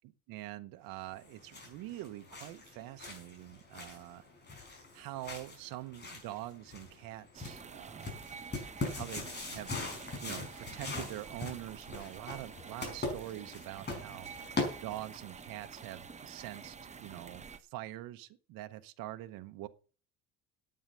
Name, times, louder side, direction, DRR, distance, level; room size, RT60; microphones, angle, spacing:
voice 1, 0.3-4.3 4.9-8.2 8.9-9.7 10.2-14.3 14.8-17.5 17.7-19.7, right 15 dB, 85° right, 9 dB, 1.0 m, -44 dB
sound 1, 1.1-15.3, left 3 dB, 30° left, 5.0 m, -42 dB
sound 2, 7.3-17.6, right 5 dB, 20° right, 0.9 m, -49 dB
9.4 x 8.8 x 6.7 m, 0.38 s
cardioid pair, 125°, 33 cm